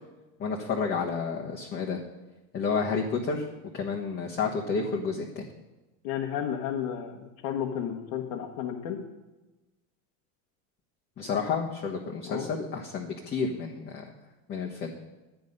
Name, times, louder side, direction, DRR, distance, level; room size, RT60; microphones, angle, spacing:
voice 1, 0.4-2.0 2.5-3.5 3.7-5.5 11.2-14.0 14.5-14.9, left 5 dB, 25° left, -1 dB, 1.2 m, -30 dB
voice 2, 6.0-9.0 12.2-12.5, left 9 dB, 65° left, 1 dB, 1.5 m, -32 dB
11.5 x 9.4 x 5.4 m, 1.1 s
cardioid pair, 160°, 38 cm